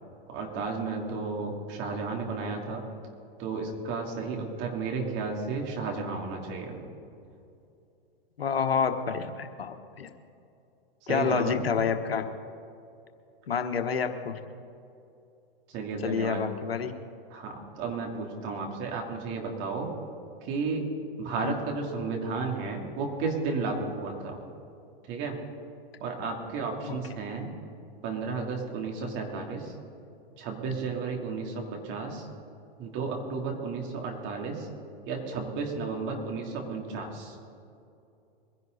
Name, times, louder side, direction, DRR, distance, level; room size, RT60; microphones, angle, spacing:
voice 1, 0.3-2.8 3.4-6.8 11.1-11.6 15.7-16.5 17.3-19.9 20.4-20.9 21.2-24.4 25.1-25.4 26.0-27.5 28.0-29.7 30.4-32.3 32.8-34.7 35.0-37.4, right 4 dB, 40° right, 1 dB, 3.3 m, -33 dB
voice 2, 8.4-10.1 11.1-12.2 13.5-14.4 16.0-16.9 21.4-21.5 26.9-27.0, left 6 dB, 90° left, 7 dB, 1.3 m, -28 dB
23.0 x 11.0 x 4.1 m, 2.6 s
hypercardioid pair, 110°, 29 cm